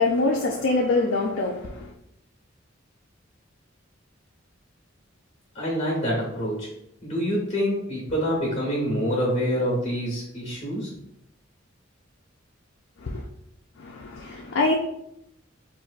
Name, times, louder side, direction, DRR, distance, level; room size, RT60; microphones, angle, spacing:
voice 1, 0.0-1.9 13.0-13.2 13.8-14.8, left 3 dB, 70° left, 0.4 m, -24 dB
voice 2, 5.5-6.7 7.0-10.9, equal, 35° left, 1.1 m, -26 dB
4.4 x 2.5 x 2.4 m
head